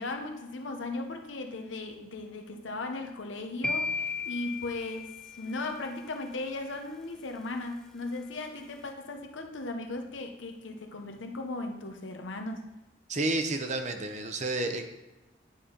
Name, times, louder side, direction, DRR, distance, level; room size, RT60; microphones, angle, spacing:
voice 1, 0.0-12.7, left 2 dB, 85° left, 0.9 m, -37 dB
sound 1, 3.6-5.8, left 4 dB, 5° left, 0.4 m, -34 dB
voice 2, 13.1-14.8, right 2 dB, 40° right, 0.8 m, -30 dB
10.0 x 4.4 x 5.1 m
head